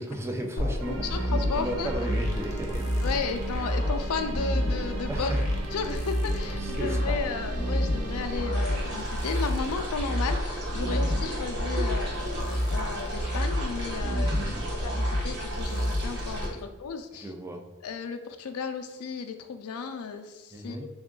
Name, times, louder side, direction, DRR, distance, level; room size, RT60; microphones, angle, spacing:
voice 1, 0.0-3.5 5.1-5.4 6.6-7.2 8.2-8.3 14.3-14.7 16.5-16.6 17.1-17.6 20.5-20.8, right 1 dB, 10° right, 3 dB, 0.4 m, -35 dB
sound 1, 0.6-16.5, equal, 35° left, 0.6 m, -29 dB
sound 2, 0.8-10.8, right 4 dB, 85° right, 0.6 m, -40 dB
voice 2, 0.9-1.9 3.0-5.3 5.7-14.6 14.8-17.3 17.8-20.9, left 5 dB, 80° left, 7 dB, 0.4 m, -34 dB
sound 3, 8.5-16.5, right 1 dB, 55° right, 0.9 m, -37 dB
3.5 x 2.4 x 3.7 m, 1.1 s
head